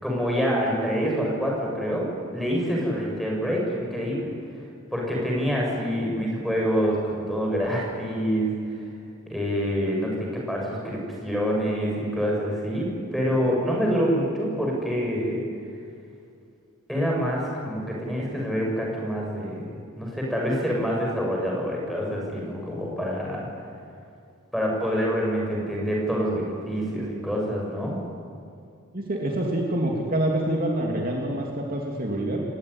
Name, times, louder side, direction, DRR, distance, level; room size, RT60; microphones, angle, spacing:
voice 1, 0.0-4.3 4.9-8.8 9.3-15.4 16.9-19.7 20.0-23.5 24.5-27.9, equal, ahead, -2 dB, 7.0 m, -26 dB
voice 2, 28.9-32.4, right 1 dB, 40° right, -1 dB, 2.8 m, -26 dB
29.5 x 17.5 x 10.0 m, 2.3 s
head